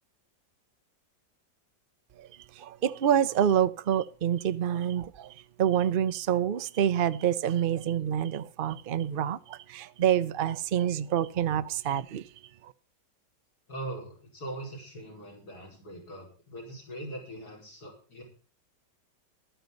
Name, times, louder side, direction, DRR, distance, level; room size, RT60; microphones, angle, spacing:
voice 1, 2.6-5.3 5.6-12.2, right 9 dB, 85° right, 0.4 m, -27 dB
voice 2, 13.7-18.2, right 1 dB, 60° left, 5.6 m, -41 dB
14.5 x 12.5 x 4.0 m
omnidirectional pair, 1.9 m